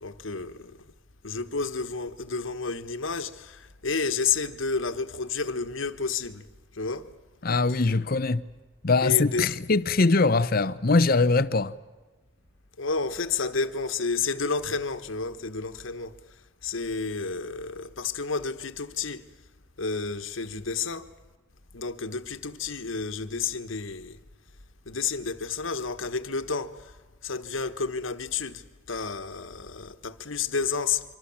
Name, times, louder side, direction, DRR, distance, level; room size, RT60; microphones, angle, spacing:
voice 1, 0.0-0.9 1.2-7.1 7.7-7.8 9.0-9.6 12.8-19.3 19.8-21.1 21.7-24.2 24.8-27.0 27.2-31.0, left 4 dB, 85° left, 1.4 m, -31 dB
voice 2, 7.4-8.4 8.8-11.7, left 3 dB, 50° left, 0.8 m, -22 dB
25.5 x 25.0 x 7.2 m
head